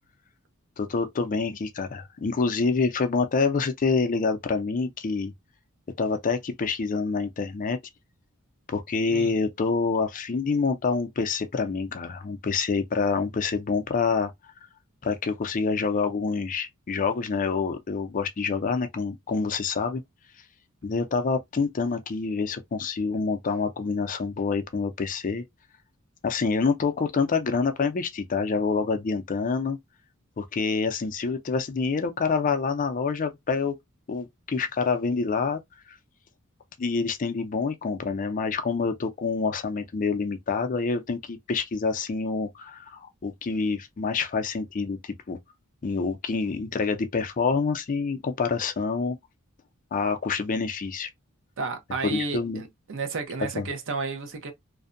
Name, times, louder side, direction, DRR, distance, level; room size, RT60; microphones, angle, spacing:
voice 1, 0.8-5.3 6.0-7.8 8.7-14.3 15.0-20.0 20.8-25.4 26.2-29.8 30.4-33.8 34.1-35.6 35.9-36.0 36.8-45.4 45.8-49.2 49.9-51.1 52.0-52.6 53.6-53.7, left 4 dB, 40° left, 0.4 m, -27 dB
voice 2, 51.6-54.5, right 3 dB, 60° right, 0.7 m, -32 dB
2.6 x 2.1 x 2.5 m
head